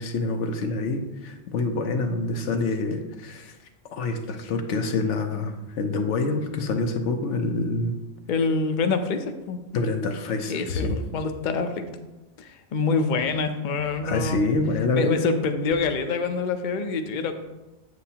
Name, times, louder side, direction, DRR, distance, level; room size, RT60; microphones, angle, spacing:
voice 1, 0.0-3.5 3.9-7.9 9.7-11.0 14.0-15.2, left 3 dB, 80° left, 5 dB, 1.1 m, -26 dB
voice 2, 8.3-9.6 10.5-11.8 12.4-14.4 14.9-17.3, left 4 dB, 50° left, 7 dB, 0.7 m, -26 dB
8.1 x 7.8 x 2.8 m, 1.1 s
omnidirectional pair, 1.2 m